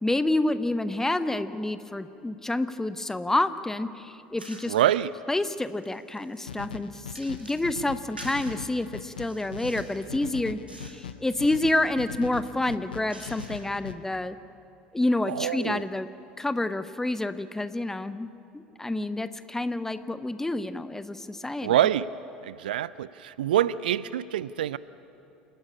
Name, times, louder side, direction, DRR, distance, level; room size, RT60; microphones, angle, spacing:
voice 1, 0.0-4.7 5.3-14.4 14.9-16.1 16.4-21.7, left 2 dB, 10° left, 13 dB, 0.9 m, -28 dB
sound 1, 4.4-4.9 5.4-7.7 8.2-8.6 9.1-10.0 10.7-11.0 11.3-11.8 12.4-13.8, right 1 dB, 85° right, 2.2 m, -48 dB
voice 2, 4.7-5.1 15.3-15.8 21.6-22.1 22.4-24.8, right 11 dB, 70° right, 19 dB, 0.4 m, -25 dB
sound 2, 6.5-13.9, left 7 dB, 75° left, 0.8 m, -40 dB
28.5 x 10.0 x 9.7 m, 2.7 s
figure-of-eight pair, 70°, 5 cm